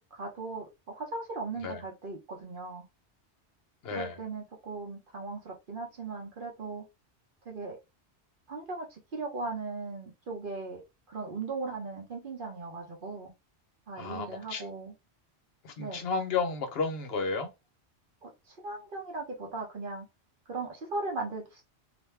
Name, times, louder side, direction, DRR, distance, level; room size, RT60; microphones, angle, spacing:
voice 1, 0.0-2.9 3.9-6.9 7.4-7.8 8.5-13.3 13.9-14.9 15.8-16.0 18.2-20.1 20.5-21.6, right 3 dB, 55° right, 0.9 m, -38 dB
voice 2, 3.8-4.2 14.0-14.7 15.6-17.5, left 4 dB, 65° left, 0.9 m, -32 dB
2.5 x 2.2 x 3.2 m
omnidirectional pair, 1.2 m